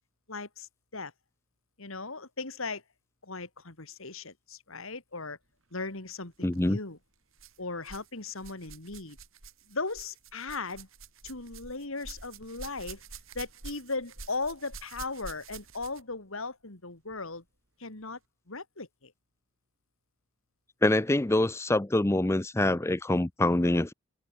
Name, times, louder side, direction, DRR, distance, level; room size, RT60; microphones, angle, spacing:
voice 1, 0.3-1.1 1.8-2.8 3.2-5.4 5.7-7.0 7.6-9.2 9.7-10.9 11.2-13.0 13.3-17.4 17.8-18.2 18.5-19.1, left 3 dB, 65° left, 2.7 m, -37 dB
voice 2, 6.4-6.8 20.8-23.9, left 1 dB, 10° left, 0.5 m, -25 dB
sound 1, 6.4-6.6 7.4-8.1 8.4-16.2 17.1-17.2 18.0-18.1, right 4 dB, 65° right, 5.1 m, -47 dB
open air
head